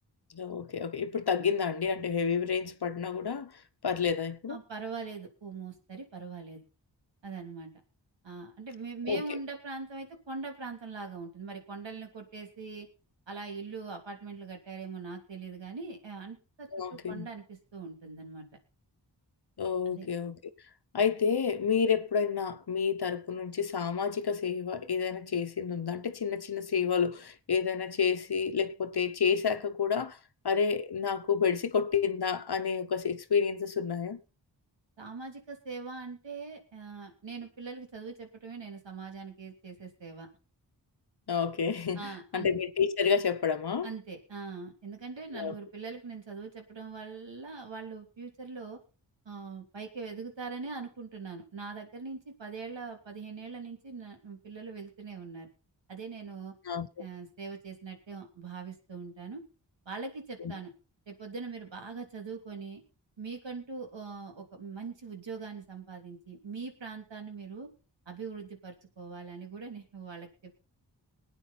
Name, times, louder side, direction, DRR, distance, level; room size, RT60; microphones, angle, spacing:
voice 1, 0.3-4.6 9.1-9.4 16.7-17.3 19.6-20.4 20.9-30.2 30.4-34.2 41.3-43.9 45.3-45.5 56.6-57.0 60.4-60.5, left 6 dB, 60° left, 1.1 m, -30 dB
voice 2, 4.5-6.6 7.2-7.7 8.2-12.9 13.3-18.5 19.9-20.1 35.0-40.3 41.9-42.5 43.8-48.8 49.2-55.5 55.9-56.5 57.0-59.4 59.8-60.7 61.1-62.8 63.2-67.7 68.1-70.5, right 4 dB, 80° right, 3.2 m, -42 dB
20.5 x 9.2 x 4.3 m
cardioid pair, 50°, 43 cm